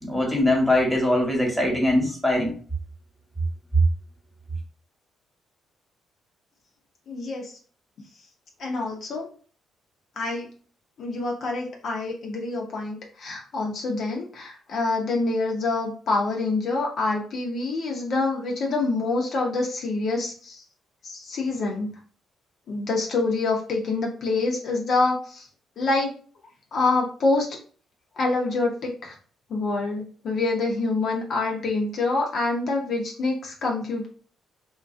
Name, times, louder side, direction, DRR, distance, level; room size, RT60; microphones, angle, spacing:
voice 1, 0.0-2.5, left 1 dB, ahead, -1 dB, 1.1 m, -22 dB
voice 2, 7.1-7.5 8.6-9.3 10.2-10.5 11.0-20.6 21.0-21.9 22.7-25.5 25.8-26.1 26.7-27.5 28.2-29.1 29.5-34.1, left 3 dB, 60° left, 0 dB, 0.8 m, -26 dB
2.9 x 2.4 x 2.6 m, 0.42 s
cardioid pair, 90°, 0 cm